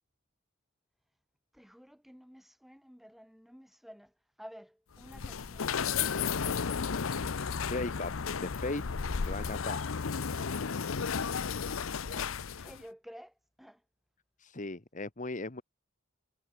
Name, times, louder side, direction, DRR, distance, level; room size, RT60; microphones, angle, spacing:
voice 1, 1.5-6.5 12.0-13.8, equal, ahead, 6.0 m, -53 dB
sound 1, 5.0-12.8, left 6 dB, 80° left, 0.7 m, -33 dB
voice 2, 7.6-8.1 8.4-8.8 9.3-9.8 14.4-15.6, left 2 dB, 40° left, 1.3 m, -37 dB
head